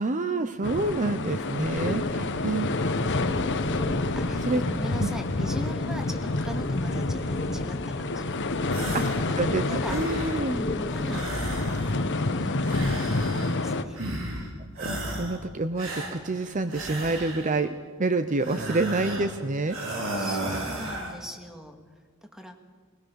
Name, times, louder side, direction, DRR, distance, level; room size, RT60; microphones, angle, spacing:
voice 1, 0.0-2.7 4.5-4.6 5.0-5.1 8.9-9.0 9.4-10.6 14.8-19.8, right 2 dB, 35° right, 10 dB, 0.7 m, -28 dB
sound 1, 0.6-13.8, left 2 dB, 55° left, 1.1 m, -28 dB
voice 2, 1.1-1.5 2.0-2.4 2.8-3.5 4.2-10.0 10.4-11.6 11.8-14.0 18.4-18.6 20.2-21.8 22.2-22.6, equal, 5° right, 4 dB, 2.0 m, -41 dB
sound 2, 1.7-11.3, left 1 dB, 35° left, 1.3 m, -35 dB
sound 3, 8.7-9.3 9.6-10.5 11.1-12.1 12.6-13.6 13.9-14.5 14.8-15.4 15.8-17.6 18.4-19.3 19.7-21.2, right 1 dB, 65° right, 4.4 m, -34 dB
21.0 x 20.5 x 6.9 m, 1.5 s
head